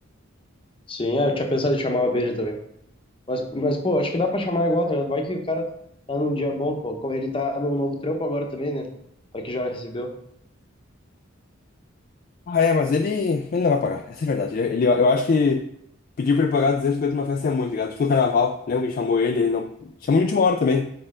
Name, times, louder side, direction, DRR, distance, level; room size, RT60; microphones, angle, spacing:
voice 1, 0.9-2.6 3.3-5.7 6.1-8.9 9.3-10.1, left 1 dB, 25° left, 4 dB, 0.8 m, -25 dB
voice 2, 12.5-15.7 16.2-20.9, left 4 dB, 45° left, 6 dB, 0.3 m, -22 dB
6.5 x 4.5 x 3.8 m, 0.73 s
head